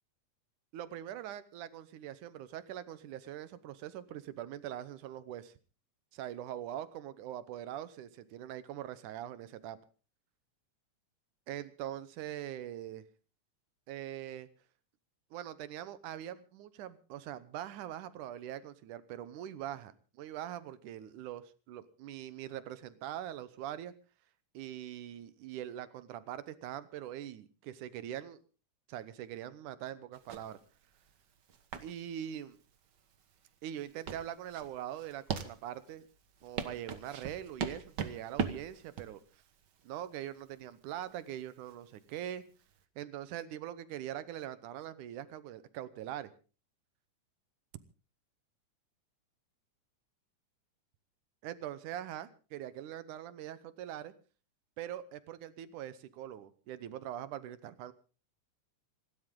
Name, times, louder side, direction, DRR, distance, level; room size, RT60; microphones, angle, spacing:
voice 1, 0.7-5.5 6.1-9.8 11.5-13.0 13.9-14.5 15.3-23.9 24.5-28.4 28.9-30.6 31.8-32.6 33.6-36.0 36.4-39.2 39.8-42.5 43.0-46.3 51.4-54.1 54.8-57.9, right 11 dB, 75° right, 15 dB, 2.4 m, -42 dB
sound 1, 30.1-42.8, right 6 dB, 55° right, 1.2 m, -41 dB
26.5 x 12.5 x 3.8 m, 0.35 s
omnidirectional pair, 3.7 m